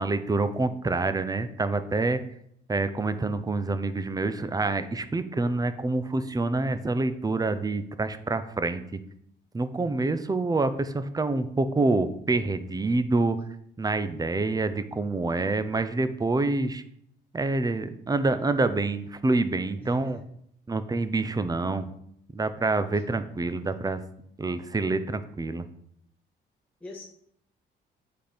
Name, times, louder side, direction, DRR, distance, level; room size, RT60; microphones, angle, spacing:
voice 1, 0.0-2.2 2.7-9.0 9.5-13.4 13.8-16.8 17.3-20.2 20.7-21.9 22.3-24.0 24.4-25.6, right 3 dB, 20° right, 11 dB, 0.7 m, -27 dB
voice 2, 9.7-10.0 19.8-20.2 26.8-27.0, left 2 dB, 5° left, -2 dB, 1.1 m, -43 dB
7.9 x 4.4 x 5.1 m, 0.70 s
cardioid pair, 90°, 20 cm